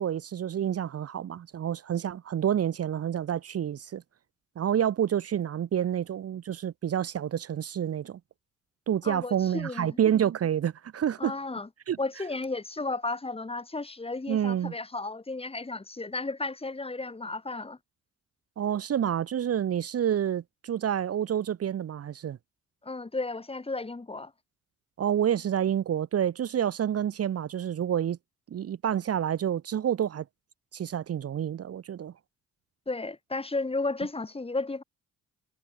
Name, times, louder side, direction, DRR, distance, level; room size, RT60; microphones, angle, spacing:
voice 1, 0.0-4.0 4.6-8.2 8.9-11.3 11.9-12.0 14.3-14.7 18.6-22.4 25.0-28.2 28.5-30.2 30.7-32.1, right 9 dB, 50° right, 1.2 m, -28 dB
voice 2, 9.0-10.0 11.2-11.7 12.0-17.8 22.8-24.3 32.9-34.8, left 3 dB, 20° left, 3.3 m, -33 dB
cardioid pair, 90°, 30 cm